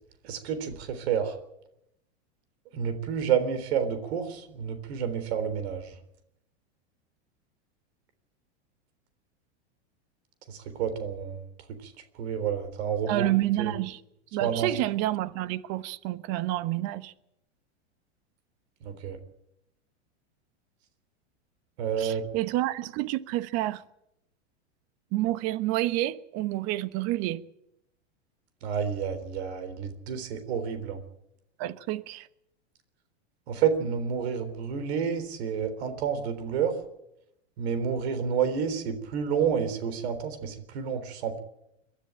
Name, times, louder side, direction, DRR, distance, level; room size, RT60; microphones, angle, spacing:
voice 1, 0.2-1.3 2.7-5.9 10.5-11.4 12.2-13.3 13.6-13.7 14.4-14.7 18.9-19.2 21.8-22.2 28.6-31.0 33.5-36.8 37.6-41.4, right 7 dB, 70° right, 3.8 m, -29 dB
voice 2, 13.1-14.0 14.3-17.1 22.0-23.8 25.1-27.4 31.6-32.3, right 15 dB, 45° right, 1.2 m, -29 dB
22.5 x 13.0 x 9.0 m
hypercardioid pair, 115°, 34 cm